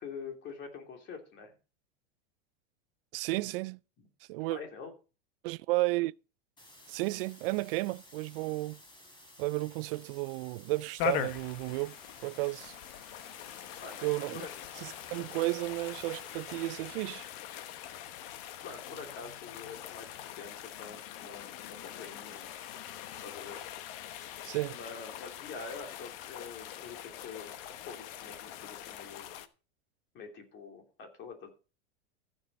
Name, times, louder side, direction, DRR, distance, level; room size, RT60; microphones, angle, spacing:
voice 1, 0.0-1.5 4.0-4.1 4.5-4.9 13.8-14.0 14.3-14.5 18.6-22.6 23.2-23.6 24.7-29.3 30.1-31.5, left 5 dB, 35° left, 3.0 m, -46 dB
voice 2, 3.1-3.8 4.3-4.6 5.4-6.1 6.9-8.8 9.4-12.8 14.0-14.4 14.8-17.3 24.4-24.8, right 21 dB, 60° right, 0.5 m, -33 dB
sound 1, 6.6-16.6, left 1 dB, 15° left, 3.4 m, -56 dB
sound 2, 11.0-29.5, left 11 dB, 60° left, 1.2 m, -42 dB
14.5 x 7.1 x 4.3 m
supercardioid pair, 145°, 33 cm